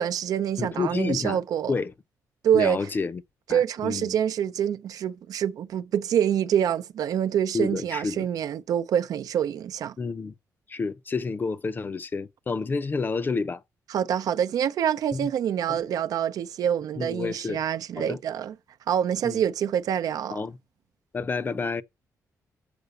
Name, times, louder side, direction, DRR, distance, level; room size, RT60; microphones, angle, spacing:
voice 1, 0.0-1.7 2.4-2.8 3.5-9.9 13.9-18.5 18.9-20.4, right 9 dB, 80° right, 0.6 m, -26 dB
voice 2, 0.6-1.4 1.7-1.9 2.5-3.2 3.5-4.1 7.5-8.2 10.0-10.3 10.7-13.6 15.1-15.3 15.7-15.8 17.0-17.6 18.0-18.2 19.2-19.4 20.3-20.6 21.1-21.8, left 4 dB, 30° left, 0.6 m, -29 dB
6.8 x 4.9 x 6.9 m
cardioid pair, 125°, 6 cm